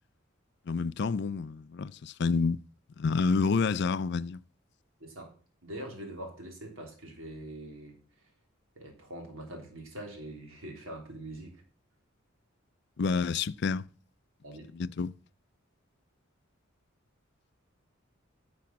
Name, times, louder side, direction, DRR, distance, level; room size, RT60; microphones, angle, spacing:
voice 1, 0.7-2.6 3.0-4.4 13.0-13.9 14.7-15.1, left 4 dB, 55° left, 0.4 m, -28 dB
voice 2, 5.0-5.3 5.6-8.3 8.8-11.6 14.4-14.7, right 1 dB, 80° right, 3.4 m, -43 dB
10.5 x 6.1 x 7.3 m
head